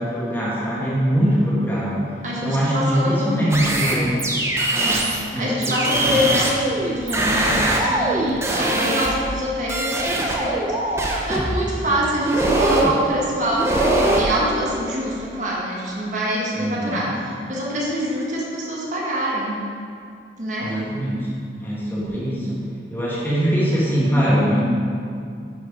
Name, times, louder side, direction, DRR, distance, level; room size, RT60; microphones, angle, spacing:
voice 1, 0.0-2.1 2.4-4.2 5.3-6.3 11.7-12.0 16.6-17.0 20.6-21.3 21.6-22.6 22.9-24.6, equal, 10° left, -8 dB, 2.2 m, -22 dB
voice 2, 2.2-3.4 4.7-19.7 20.4-20.8, equal, 45° right, -4 dB, 1.6 m, -25 dB
sound 1, 3.5-5.2 5.6-9.4 9.7-11.6 12.3-12.9 13.5-14.3, right 2 dB, 15° right, 1.0 m, -22 dB
10.0 x 6.3 x 5.3 m, 2.3 s
head